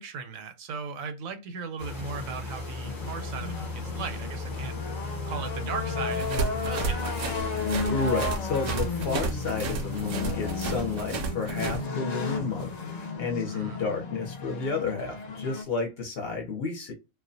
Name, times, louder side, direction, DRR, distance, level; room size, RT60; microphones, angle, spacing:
voice 1, 0.0-4.8 5.3-7.2 13.5-13.8, right 5 dB, 85° right, 1.0 m, -37 dB
sound 1, 1.8-11.2, left 3 dB, 25° left, 0.4 m, -37 dB
sound 2, 2.8-15.6, left 4 dB, 85° left, 0.3 m, -34 dB
sound 3, 6.1-11.8, right 5 dB, 60° right, 0.6 m, -32 dB
voice 2, 7.8-12.7 13.1-16.9, left 4 dB, 55° left, 0.8 m, -31 dB
2.4 x 2.1 x 2.6 m
omnidirectional pair, 1.4 m